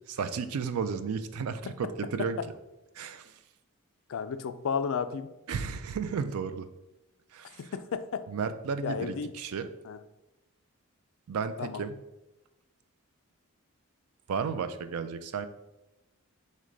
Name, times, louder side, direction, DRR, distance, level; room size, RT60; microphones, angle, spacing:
voice 1, 0.2-2.4 2.9-3.4 5.5-6.7 7.3-7.7 8.3-9.7 11.3-11.9 14.3-15.5, right 6 dB, 90° right, 11 dB, 0.4 m, -33 dB
voice 2, 4.1-5.3 7.6-8.2 8.8-9.3 9.8-10.0 11.6-11.8, left 6 dB, 70° left, 11 dB, 0.3 m, -33 dB
6.1 x 2.2 x 3.8 m, 0.97 s
head